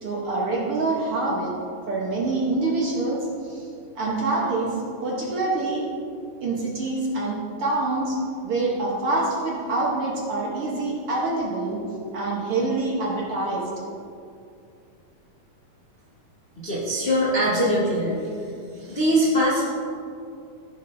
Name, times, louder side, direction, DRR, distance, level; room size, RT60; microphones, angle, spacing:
voice 1, 0.0-1.5 1.9-3.7 4.0-4.8 5.0-5.9 6.4-8.2 8.4-11.8 12.1-13.6, right 2 dB, 55° right, -4 dB, 1.7 m, -26 dB
voice 2, 16.6-18.3 18.8-19.7, equal, 35° left, -8 dB, 0.9 m, -22 dB
16.0 x 7.4 x 2.7 m, 2.5 s
omnidirectional pair, 3.6 m